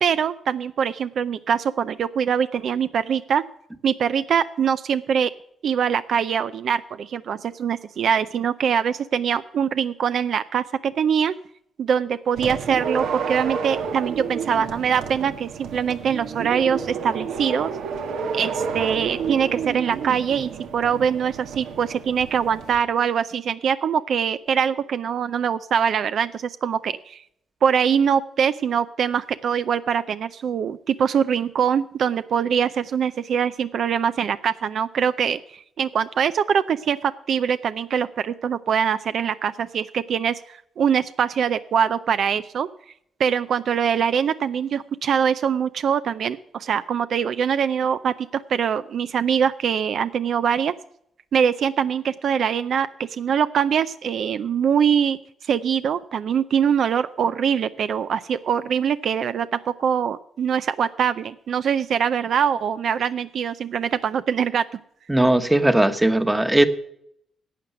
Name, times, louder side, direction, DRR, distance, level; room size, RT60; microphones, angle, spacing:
voice 1, 0.0-3.4 3.8-5.3 5.6-11.3 11.8-17.7 18.3-27.2 27.6-42.7 43.2-50.7 51.3-55.2 55.5-64.6, right 7 dB, 65° right, 12 dB, 0.5 m, -23 dB
sound 1, 12.3-22.8, right 6 dB, 85° right, 1.4 m, -30 dB
voice 2, 65.1-66.7, right 1 dB, 10° right, 10 dB, 1.1 m, -18 dB
11.5 x 7.7 x 6.7 m, 0.72 s
cardioid pair, 85°, 0 cm